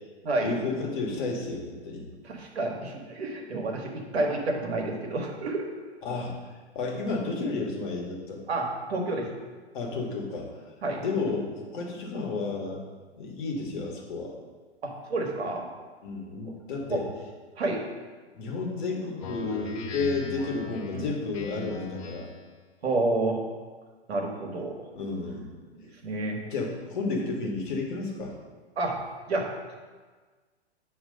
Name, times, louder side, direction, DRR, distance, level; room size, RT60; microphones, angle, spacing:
voice 1, 0.4-2.0 6.0-8.5 9.7-10.5 11.0-12.8 13.2-14.3 16.0-17.0 18.3-22.3 24.9-25.5 26.5-28.3, left 3 dB, 45° left, -1 dB, 1.4 m, -32 dB
voice 2, 2.2-5.7 8.5-9.3 10.8-11.0 14.8-15.6 16.9-17.0 17.6-17.8 20.9-21.0 22.8-23.4 24.1-24.9 26.0-26.4 28.8-29.0 29.3-29.5, right 2 dB, 65° right, 1 dB, 1.3 m, -29 dB
Speech synthesizer, 19.2-22.5, left 5 dB, 30° left, 0.5 m, -39 dB
7.2 x 3.0 x 5.1 m, 1.4 s
figure-of-eight pair, 115°, 34 cm